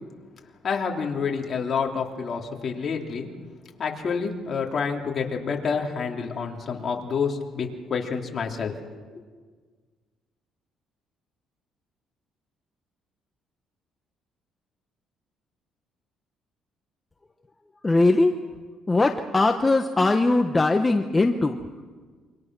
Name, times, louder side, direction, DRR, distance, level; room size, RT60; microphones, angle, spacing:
voice 1, 0.6-3.3 3.8-8.7, left 5 dB, 40° left, 1 dB, 3.2 m, -28 dB
voice 2, 17.8-18.3 18.9-21.5, left 2 dB, 15° left, 5 dB, 1.0 m, -20 dB
27.5 x 25.5 x 6.2 m, 1.5 s
cardioid pair, 120°, 0 cm